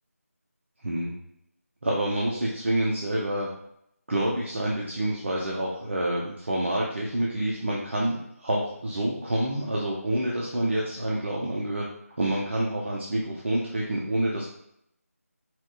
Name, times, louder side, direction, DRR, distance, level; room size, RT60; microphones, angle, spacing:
voice 1, 1.8-3.5 4.1-11.8 12.2-14.4, right 1 dB, 50° right, -4 dB, 0.7 m, -27 dB
4.4 x 2.4 x 3.8 m, 0.75 s
figure-of-eight pair, 165°, 8 cm